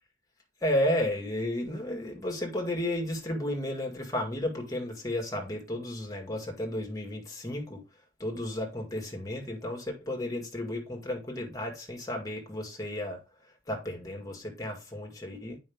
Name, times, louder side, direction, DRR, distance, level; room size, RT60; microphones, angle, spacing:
voice 1, 0.6-7.8 8.2-13.2 13.7-15.6, left 1 dB, 15° left, 1.7 m, -33 dB
8.6 x 5.2 x 3.5 m
head